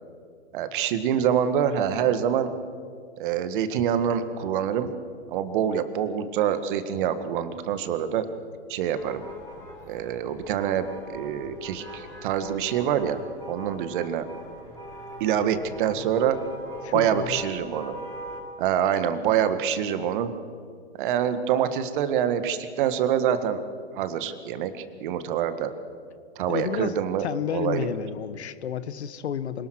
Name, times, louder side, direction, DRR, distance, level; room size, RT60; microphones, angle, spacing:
voice 1, 0.5-2.5 3.2-4.9 5.3-8.3 8.7-9.2 9.9-13.2 13.5-14.3 15.2-16.4 16.9-18.0 18.6-20.3 21.0-23.6 24.0-25.7 26.4-27.3 27.5-27.9, right 9 dB, 50° right, 11 dB, 1.8 m, -25 dB
sound 1, 9.0-18.4, right 1 dB, 10° left, 6.9 m, -42 dB
voice 2, 16.8-17.4 26.5-26.9 27.2-29.7, left 9 dB, 75° left, 15 dB, 1.3 m, -31 dB
26.5 x 19.0 x 6.5 m, 2.2 s
hypercardioid pair, 130°, 33 cm